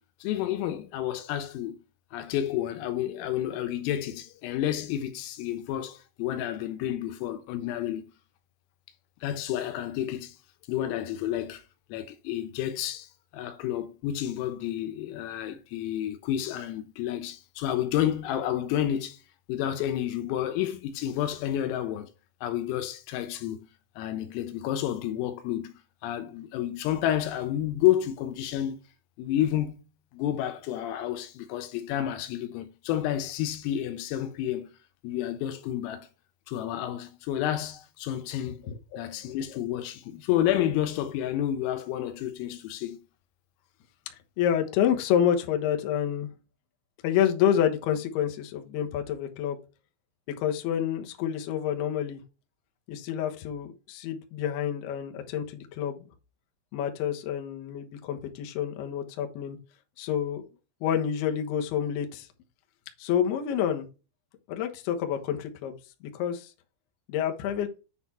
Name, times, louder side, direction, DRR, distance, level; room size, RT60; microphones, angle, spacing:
voice 1, 0.2-1.8 2.1-8.0 9.2-10.4 10.7-11.6 11.9-19.2 19.5-22.1 22.4-23.7 24.0-25.7 26.0-28.8 29.2-29.8 30.1-34.7 35.0-36.1 36.5-38.6 39.0-43.0, left 11 dB, 85° left, 3.6 m, -30 dB
voice 2, 38.7-39.0 44.4-46.3 47.0-49.6 50.4-52.2 52.9-56.0 56.7-59.6 60.0-60.4 60.8-62.3 63.0-63.9 64.5-65.8 66.1-66.5 67.1-67.7, left 9 dB, 70° left, 2.7 m, -28 dB
9.6 x 4.2 x 4.2 m
omnidirectional pair, 5.9 m